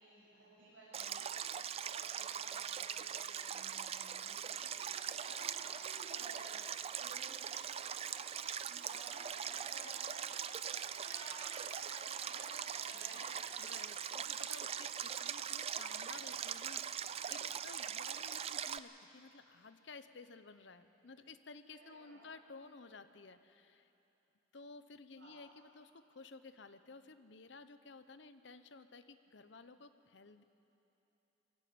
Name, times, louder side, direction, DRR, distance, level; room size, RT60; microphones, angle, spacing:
voice 1, 0.0-6.6 6.9-8.4 8.7-10.3 10.8-13.2 21.8-22.2 25.1-25.4, right 2 dB, 70° right, -8 dB, 6.8 m, -56 dB
Stream, 0.9-18.8, right 8 dB, 30° right, 0.4 m, -41 dB
voice 2, 13.6-23.9 24.5-30.4, left 4 dB, 60° left, 11 dB, 0.8 m, -55 dB
22.5 x 15.0 x 8.6 m, 3.0 s
head